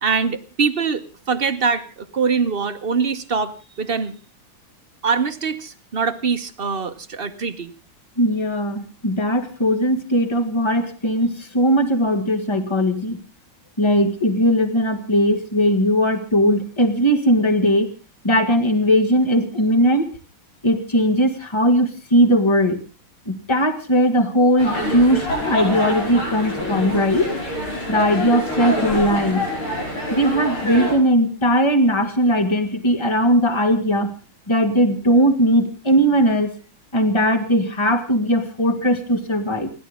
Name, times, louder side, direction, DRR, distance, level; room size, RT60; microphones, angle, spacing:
voice 1, 0.0-4.2 5.0-7.7, right 5 dB, 40° right, 8 dB, 0.9 m, -23 dB
voice 2, 8.2-13.2 13.8-17.9 18.2-20.1 20.6-22.8 23.3-27.3 27.9-29.5 30.1-34.1 34.5-36.5 36.9-39.7, equal, 15° left, 7 dB, 1.8 m, -19 dB
sound 1, 24.6-30.9, left 1 dB, 80° left, 7.7 m, -26 dB
29.5 x 12.0 x 3.7 m, 0.33 s
omnidirectional pair, 2.3 m